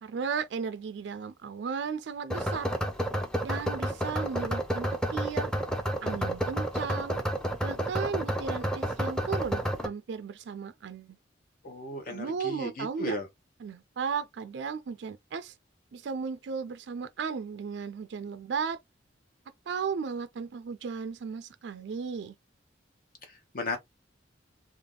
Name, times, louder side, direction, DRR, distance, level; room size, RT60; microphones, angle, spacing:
voice 1, 0.0-2.7 3.4-5.5 6.0-7.2 7.6-11.2 12.1-13.2 13.6-15.6 15.9-18.8 19.7-22.3, right 6 dB, 70° right, 0.4 m, -35 dB
sound 1, 2.3-9.9, right 1 dB, 5° left, 0.6 m, -30 dB
voice 2, 11.6-13.3 23.5-23.8, left 1 dB, 50° left, 0.9 m, -34 dB
3.5 x 2.3 x 3.6 m
head